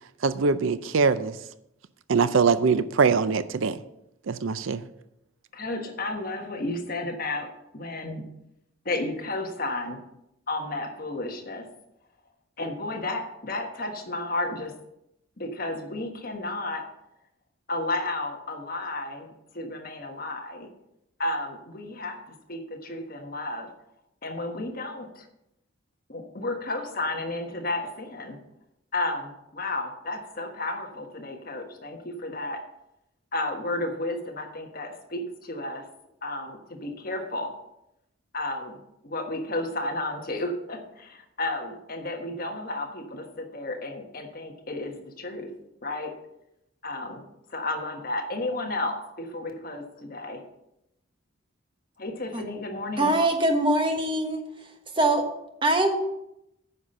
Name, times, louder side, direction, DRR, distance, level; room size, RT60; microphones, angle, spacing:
voice 1, 0.2-1.3 2.1-3.8 4.3-4.8, right 5 dB, 70° right, 13 dB, 0.5 m, -22 dB
voice 2, 5.5-8.2 8.8-10.0 10.5-11.7 12.6-14.7 15.4-16.9 17.7-20.7 21.2-22.2 22.5-23.7 24.2-25.3 26.1-28.4 28.9-32.6 33.3-35.9 36.2-37.5 38.3-38.8 39.0-45.5 45.8-46.1 46.8-47.2 47.5-50.4 52.0-53.2, left 2 dB, 45° left, 3 dB, 1.3 m, -32 dB
voice 3, 53.0-54.4 55.0-55.2 55.6-56.0, right 1 dB, 25° right, 4 dB, 1.2 m, -22 dB
9.6 x 5.8 x 6.6 m, 0.83 s
head